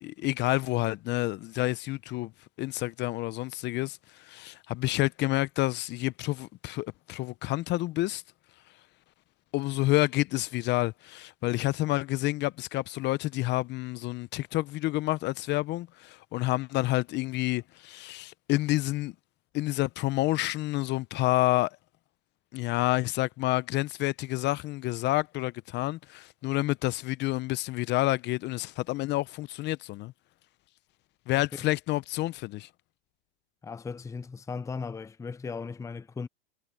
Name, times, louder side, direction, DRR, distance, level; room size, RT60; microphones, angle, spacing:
voice 1, 0.0-2.3 2.6-8.2 9.5-19.1 19.5-21.7 22.5-30.1 31.3-32.7, left 18 dB, 35° left, 0.8 m, -29 dB
voice 2, 33.6-36.3, left 5 dB, 10° left, 0.8 m, -37 dB
hypercardioid pair, 110°, 29 cm